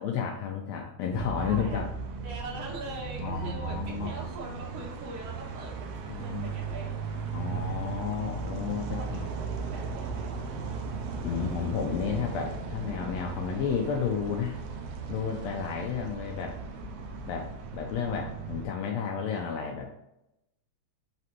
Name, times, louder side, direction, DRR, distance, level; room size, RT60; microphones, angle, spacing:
voice 1, 0.0-1.9 3.2-4.1 6.1-6.5 7.3-9.3 11.2-14.6 15.1-16.6 17.3-19.9, left 7 dB, 80° left, 1 dB, 1.6 m, -32 dB
sound 1, 1.1-18.7, right 5 dB, 90° right, 1.3 m, -36 dB
voice 2, 1.4-7.0 8.2-10.5, right 2 dB, 60° right, -4 dB, 2.1 m, -43 dB
5.1 x 3.3 x 2.9 m, 0.87 s
omnidirectional pair, 3.5 m